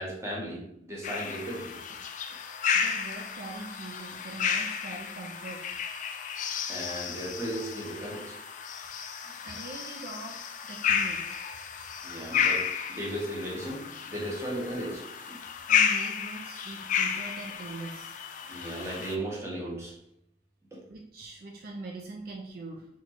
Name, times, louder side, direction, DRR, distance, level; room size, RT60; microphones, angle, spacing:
voice 1, 0.0-1.8 6.7-8.4 12.0-15.4 18.5-20.0 20.7-20.8, right 1 dB, 15° right, -4 dB, 1.0 m, -36 dB
sound 1, 1.0-19.2, left 7 dB, 45° left, 0.3 m, -32 dB
voice 2, 2.7-5.6 8.4-8.5 9.4-11.3 15.7-18.2 20.9-22.9, right 2 dB, 55° right, 1 dB, 0.4 m, -42 dB
4.1 x 3.0 x 3.0 m, 0.77 s
head